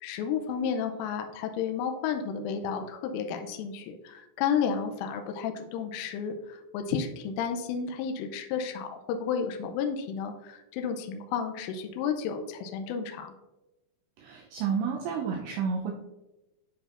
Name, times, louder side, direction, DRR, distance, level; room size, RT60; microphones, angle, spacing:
voice 1, 0.0-13.3, left 7 dB, 80° left, 5 dB, 3.1 m, -32 dB
voice 2, 14.2-15.9, right 6 dB, 85° right, 0 dB, 2.6 m, -30 dB
10.0 x 4.4 x 2.5 m, 0.99 s
omnidirectional pair, 5.9 m